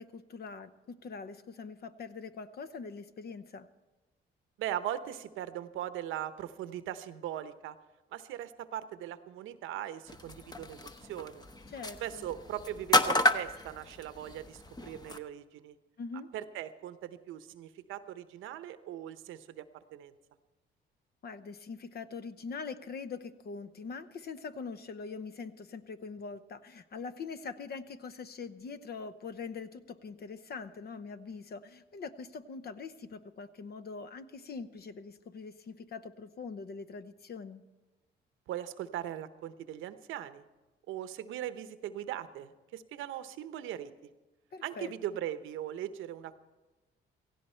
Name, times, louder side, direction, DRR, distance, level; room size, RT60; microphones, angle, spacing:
voice 1, 0.0-3.7 11.7-12.3 16.0-16.3 21.2-37.6 44.5-44.9, left 4 dB, 55° left, 12 dB, 0.9 m, -43 dB
voice 2, 4.6-7.8 8.1-11.5 12.0-15.8 16.3-20.1 38.5-40.4 40.9-43.9 44.6-46.4, right 11 dB, 90° right, 12 dB, 0.8 m, -39 dB
sound 1, 10.1-15.2, left 1 dB, 20° left, 0.9 m, -32 dB
17.0 x 15.5 x 4.4 m, 1.1 s
cardioid pair, 90°, 20 cm